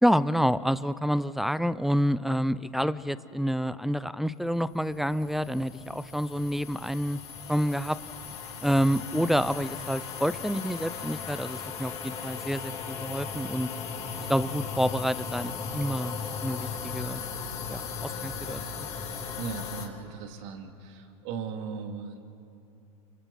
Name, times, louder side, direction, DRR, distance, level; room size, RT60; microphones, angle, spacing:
voice 1, 0.0-7.2 7.5-8.0 8.6-13.7 14.3-16.2 16.4-17.2 17.7-18.9, equal, ahead, 17 dB, 0.5 m, -28 dB
sound 1, 4.7-19.9, left 5 dB, 30° left, 3.4 m, -37 dB
voice 2, 19.4-22.3, right 6 dB, 55° right, 4 dB, 2.7 m, -38 dB
30.0 x 24.5 x 4.2 m, 2.7 s
hypercardioid pair, 100°, 19 cm